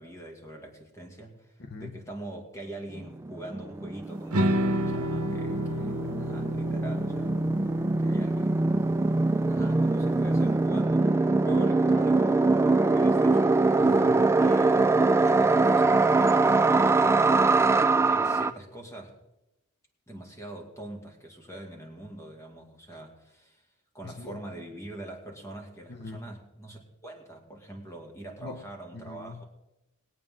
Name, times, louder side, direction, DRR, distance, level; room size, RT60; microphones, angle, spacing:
voice 1, 0.0-7.4 8.0-13.7 14.3-19.1 20.1-23.7 23.9-29.4, right 1 dB, 15° left, 1 dB, 2.1 m, -44 dB
voice 2, 1.6-2.0 13.8-14.3 24.0-24.4 25.9-26.3 28.4-28.6 28.9-29.4, left 3 dB, 50° left, 6 dB, 0.8 m, -42 dB
sound 1, 3.0-3.1 3.3-18.5, right 3 dB, 10° right, 0.3 m, -23 dB
sound 2, 4.3-10.6, right 1 dB, 70° right, 1.1 m, -32 dB
21.5 x 8.5 x 3.7 m, 0.93 s
head